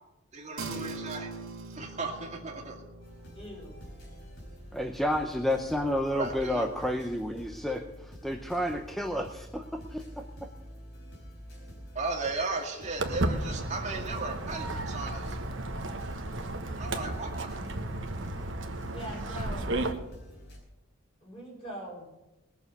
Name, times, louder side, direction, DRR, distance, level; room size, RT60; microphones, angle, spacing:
voice 1, 0.3-1.3 1.7-2.7 6.1-6.9 11.9-15.4 16.8-17.3, right 3 dB, 35° right, 1 dB, 2.1 m, -35 dB
sound 1, 0.6-10.3, right 3 dB, 85° right, 2.2 m, -45 dB
sound 2, 3.0-20.6, equal, 55° left, 4.7 m, -48 dB
voice 2, 3.3-3.8 18.9-19.7 21.2-22.1, right 1 dB, 30° left, -3 dB, 4.4 m, -42 dB
voice 3, 4.7-10.5, equal, ahead, 4 dB, 0.6 m, -31 dB
Walk footsteps, 13.0-19.9, right 2 dB, 65° right, 1.2 m, -33 dB
20.5 x 7.0 x 6.8 m, 0.99 s
head